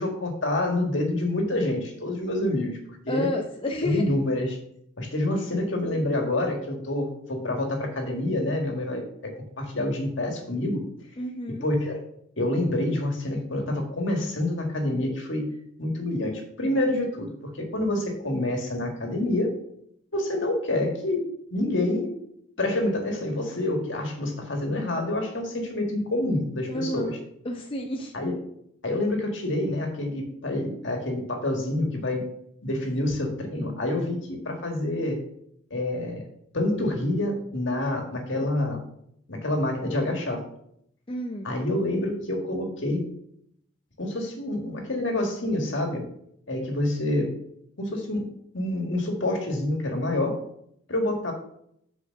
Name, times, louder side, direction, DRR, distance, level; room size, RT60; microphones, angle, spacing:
voice 1, 0.0-3.3 3.8-4.6 5.0-9.3 9.6-10.8 11.6-12.0 12.4-15.5 15.8-19.5 20.1-21.2 21.5-22.1 22.6-27.2 28.1-28.4 28.8-32.3 32.6-35.2 35.7-36.2 36.5-38.8 39.3-40.4 41.4-43.1 44.0-46.1 46.5-47.3 47.8-48.3 48.5-50.4 50.9-51.3, left 1 dB, 60° left, 2 dB, 1.8 m, -27 dB
voice 2, 3.1-4.1 5.3-5.4 11.2-11.7 26.7-27.2 27.4-28.1 41.1-41.5, left 1 dB, 25° left, 2 dB, 0.5 m, -30 dB
6.5 x 4.8 x 6.3 m, 0.71 s
head